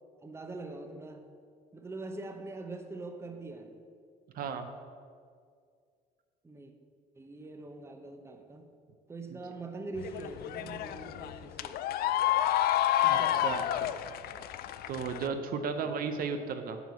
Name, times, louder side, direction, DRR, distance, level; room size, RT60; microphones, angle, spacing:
voice 1, 0.2-1.3 1.7-3.8 6.4-6.7 7.2-8.7 9.1-11.8 13.0-13.5 15.8-15.9, right 3 dB, 15° right, 6 dB, 0.8 m, -43 dB
voice 2, 4.3-4.7 9.3-9.4 13.1-13.9 14.9-16.8, right 5 dB, 60° right, 7 dB, 0.7 m, -35 dB
sound 1, 10.0-15.3, left 12 dB, 65° left, 0.4 m, -30 dB
8.0 x 4.8 x 6.9 m, 2.1 s
cardioid pair, 110°, 17 cm